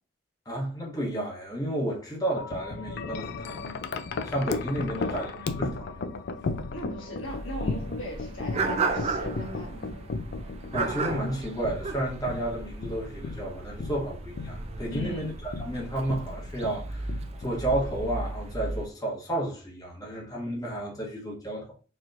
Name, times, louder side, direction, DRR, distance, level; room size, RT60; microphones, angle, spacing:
voice 1, 0.5-3.8 4.2-6.2 10.7-21.7, right 1 dB, 20° left, 1.1 m, -32 dB
Wind chime, 2.4-18.5, left 4 dB, 55° left, 0.4 m, -36 dB
voice 2, 4.9-5.3 6.7-9.9 14.9-15.3, equal, 85° left, 1.5 m, -38 dB
sound 1, 7.2-18.9, right 3 dB, 35° right, 0.4 m, -35 dB
4.2 x 2.9 x 2.5 m
head